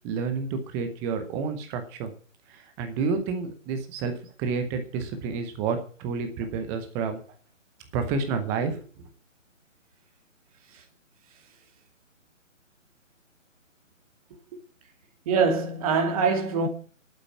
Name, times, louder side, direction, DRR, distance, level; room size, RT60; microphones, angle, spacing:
voice 1, 0.0-2.1 2.5-4.1 4.4-7.2 7.9-8.8, right 5 dB, 5° right, 0.7 m, -29 dB
voice 2, 15.3-16.7, right 5 dB, 25° right, 2.4 m, -23 dB
11.5 x 8.9 x 8.7 m
figure-of-eight pair, 145°, 39 cm